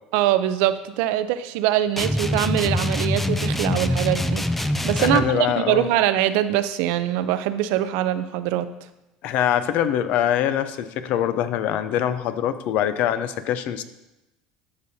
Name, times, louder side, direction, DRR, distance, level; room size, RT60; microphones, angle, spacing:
voice 1, 0.1-4.4 4.8-8.7, right 12 dB, 75° right, 13 dB, 0.5 m, -23 dB
sound 1, 2.0-5.3, left 1 dB, 5° left, 0.4 m, -24 dB
voice 2, 5.0-5.9 9.2-13.8, left 10 dB, 65° left, 12 dB, 0.5 m, -23 dB
12.0 x 5.2 x 2.7 m, 0.96 s
supercardioid pair, 110°, 3 cm